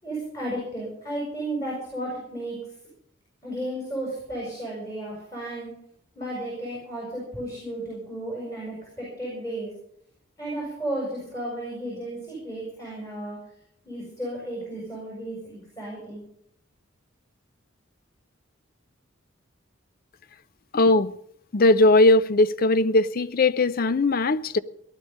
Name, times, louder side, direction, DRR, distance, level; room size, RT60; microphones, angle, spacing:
voice 1, 0.0-2.6 3.4-5.7 6.1-9.7 10.4-13.4 13.9-16.2, right 1 dB, 20° left, 6.9 m, -33 dB
voice 2, 20.7-21.2 21.5-24.6, left 2 dB, 45° left, 0.5 m, -19 dB
18.5 x 11.5 x 5.3 m
head